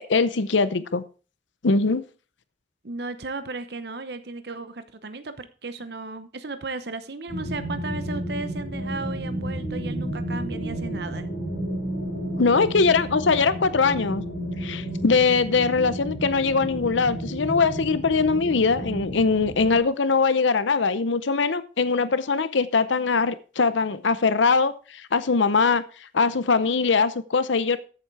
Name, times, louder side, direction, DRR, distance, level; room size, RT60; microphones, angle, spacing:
voice 1, 0.1-1.0 1.6-2.0 12.4-14.2 14.6-27.8, left 4 dB, 85° left, 0.7 m, -22 dB
voice 2, 2.8-11.3, right 3 dB, 60° right, 0.9 m, -35 dB
sound 1, 7.3-19.8, right 1 dB, 65° left, 6.5 m, -32 dB
14.0 x 7.3 x 4.8 m
head